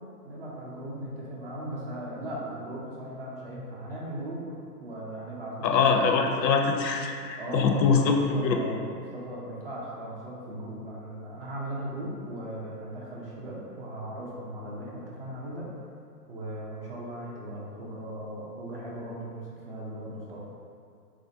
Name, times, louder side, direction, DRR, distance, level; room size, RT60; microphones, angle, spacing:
voice 1, 0.2-4.5 4.8-6.1 7.4-15.7 16.3-20.5, right 1 dB, 40° right, -5 dB, 0.5 m, -38 dB
voice 2, 5.6-8.6, left 5 dB, 85° left, 3 dB, 0.6 m, -23 dB
3.2 x 2.4 x 2.7 m, 2.4 s
hypercardioid pair, 145°, 49 cm